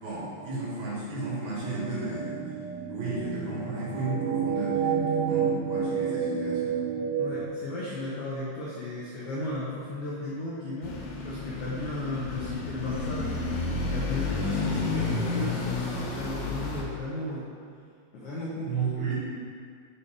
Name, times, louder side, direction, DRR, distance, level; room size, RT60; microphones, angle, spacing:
voice 1, 0.0-2.3 2.9-6.8 13.7-13.8 18.7-19.1, right 3 dB, 65° right, -8 dB, 3.6 m, -33 dB
sound 1, 1.6-7.5, right 6 dB, 85° right, 2.7 m, -29 dB
voice 2, 7.2-10.9 11.2-13.2 13.8-17.5 18.1-19.1, left 2 dB, 85° left, -6 dB, 1.7 m, -35 dB
sound 2, 10.8-16.8, left 3 dB, 70° left, 2.7 m, -31 dB
7.1 x 4.1 x 5.1 m, 2.2 s
omnidirectional pair, 4.7 m